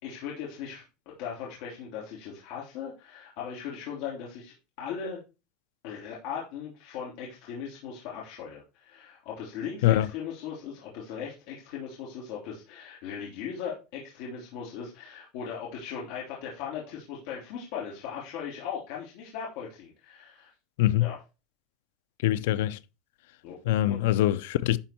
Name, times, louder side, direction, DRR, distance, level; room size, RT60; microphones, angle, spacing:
voice 1, 0.0-0.8 1.2-5.2 5.8-20.5 21.0-21.2 23.4-23.6 23.9-24.0, left 7 dB, 60° left, 3.3 m, -38 dB
voice 2, 20.8-21.1 22.2-22.8 23.7-24.8, left 14 dB, 80° left, 0.6 m, -23 dB
11.5 x 4.6 x 4.4 m
cardioid pair, 165°, 0 cm